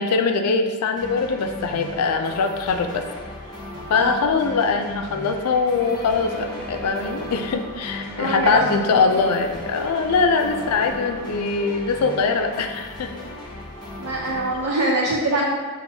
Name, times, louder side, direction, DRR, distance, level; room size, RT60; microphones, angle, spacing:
voice 1, 0.0-3.0 3.9-13.1, left 4 dB, 85° left, 5 dB, 0.4 m, -22 dB
sound 1, 1.0-14.7, left 1 dB, 20° left, 0.7 m, -37 dB
sound 2, 5.8-12.5, equal, 25° right, 0.9 m, -38 dB
voice 2, 8.2-9.2 14.0-15.5, right 1 dB, 80° right, -3 dB, 0.6 m, -24 dB
6.9 x 2.5 x 2.7 m, 1.5 s
head